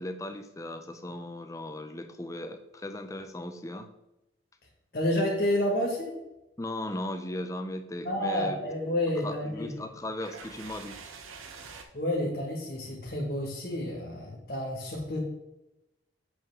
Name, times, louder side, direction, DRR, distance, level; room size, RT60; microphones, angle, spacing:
voice 1, 0.0-3.9 6.6-8.6 9.2-11.0, left 1 dB, 15° left, 7 dB, 0.5 m, -37 dB
voice 2, 4.9-6.1 8.0-9.7 11.9-15.2, left 1 dB, 50° left, -3 dB, 1.6 m, -29 dB
sound 1, 8.8-11.8, right 5 dB, 90° right, 0.9 m, -47 dB
7.1 x 5.5 x 3.6 m, 0.93 s
head